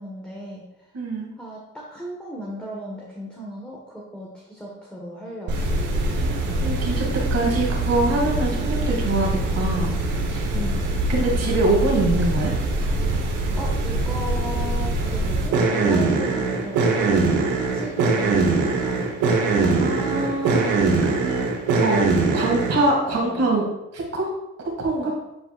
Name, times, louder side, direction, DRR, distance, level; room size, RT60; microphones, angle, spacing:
voice 1, 0.0-0.9 1.4-5.8 10.5-10.8 13.6-19.1 22.9-23.6 25.0-25.1, equal, 5° left, -4 dB, 1.5 m, -36 dB
voice 2, 0.9-1.3 6.2-6.4 6.6-9.9 10.3-10.5 11.1-12.5 19.6-20.7 21.0-21.5 21.8-22.0 22.3-23.6 23.9-24.3 24.8-25.1, right 2 dB, 55° right, -1 dB, 2.5 m, -24 dB
sound 1, 5.5-22.9, right 3 dB, 85° right, 1.3 m, -23 dB
11.0 x 4.4 x 2.5 m, 0.90 s
cardioid pair, 90°, 30 cm